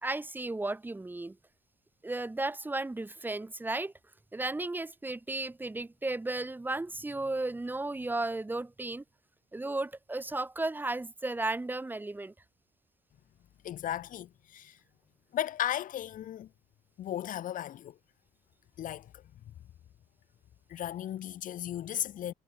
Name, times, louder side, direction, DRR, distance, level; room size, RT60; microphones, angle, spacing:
voice 1, 0.0-1.4 2.0-3.9 4.3-9.0 9.5-12.3, right 2 dB, 15° right, 2.1 m, -34 dB
voice 2, 13.6-14.8 15.3-16.5 17.0-18.0 18.8-19.2 20.7-22.3, left 11 dB, 65° left, 1.9 m, -35 dB
cardioid pair, 125°, 15 cm